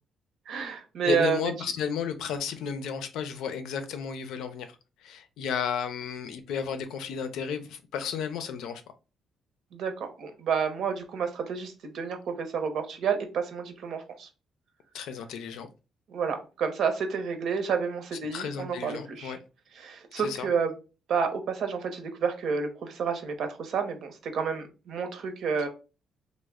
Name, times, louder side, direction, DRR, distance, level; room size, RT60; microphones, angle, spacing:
voice 1, 0.5-1.5 9.7-14.3 16.1-19.4 19.7-20.7 21.1-25.7, right 6 dB, 65° right, 0.7 m, -30 dB
voice 2, 1.0-4.7 5.0-8.8 14.9-15.7 18.3-19.4 20.2-20.5, left 7 dB, 85° left, 0.5 m, -33 dB
3.1 x 2.1 x 3.5 m
cardioid pair, 125°, 0 cm